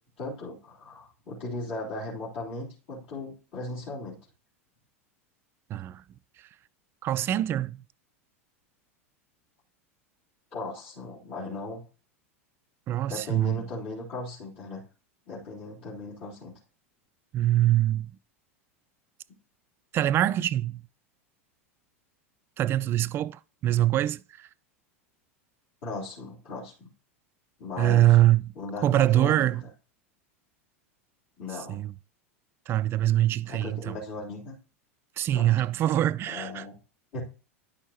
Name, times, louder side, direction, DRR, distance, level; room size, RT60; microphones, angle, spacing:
voice 1, 0.2-4.2 10.5-11.8 13.1-14.8 15.3-16.5 25.8-26.9 27.6-28.2 28.6-29.5 31.4-31.8 33.5-34.6 35.3-35.5 36.3-36.7 37.1-37.2, left 2 dB, 60° left, 3.6 m, -37 dB
voice 2, 5.7-6.0 7.0-7.8 12.9-13.6 17.3-18.1 19.9-20.8 22.6-24.5 27.8-28.4 28.8-29.6 31.7-31.9 32.7-34.0 35.2-36.6, right 13 dB, 30° right, 0.3 m, -24 dB
10.5 x 6.2 x 2.9 m
figure-of-eight pair, 85°, 7 cm